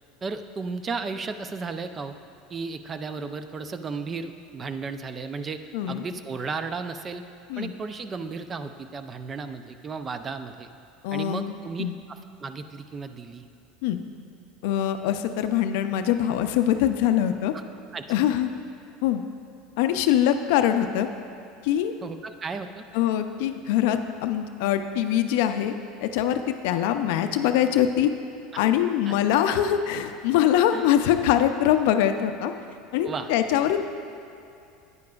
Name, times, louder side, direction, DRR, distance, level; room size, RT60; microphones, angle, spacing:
voice 1, 0.2-2.1 2.5-5.6 5.9-7.2 7.6-10.7 11.1-13.4 17.5-17.6 17.9-18.0 22.0-22.8 28.5-28.6 29.0-29.1 30.7-30.9 33.0-33.3, right 4 dB, 25° right, 9 dB, 0.4 m, -34 dB
voice 2, 11.0-11.5 11.8-12.0 13.8-14.0 14.6-17.5 18.1-18.5 19.0-19.2 19.8-21.1 21.6-21.9 22.9-25.7 26.0-28.1 28.6-32.5 32.9-33.8, left 11 dB, 75° left, 8 dB, 0.4 m, -23 dB
9.7 x 9.5 x 2.3 m, 2.6 s
supercardioid pair, 115°, 0 cm